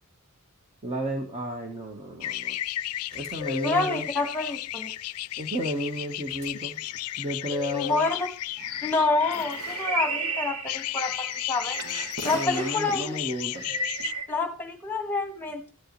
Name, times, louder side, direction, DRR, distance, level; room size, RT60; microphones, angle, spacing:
voice 1, 0.8-2.6 3.1-4.1 5.4-6.8 7.2-8.0 12.3-13.8, equal, 30° right, 2 dB, 1.3 m, -32 dB
sound 1, 2.2-10.2 10.6-14.1, left 14 dB, 85° left, 0.4 m, -34 dB
sound 2, 3.1-4.0 6.3-6.5 7.5-8.1, left 12 dB, 55° right, 5.4 m, -36 dB
voice 2, 3.6-4.9 7.7-8.3 8.8-11.8 12.2-13.2 14.3-15.7, left 3 dB, 10° left, 5 dB, 1.7 m, -28 dB
sound 3, 8.6-13.0 13.5-14.2, right 3 dB, 85° right, 1.6 m, -33 dB
13.5 x 7.8 x 3.2 m, 0.39 s
head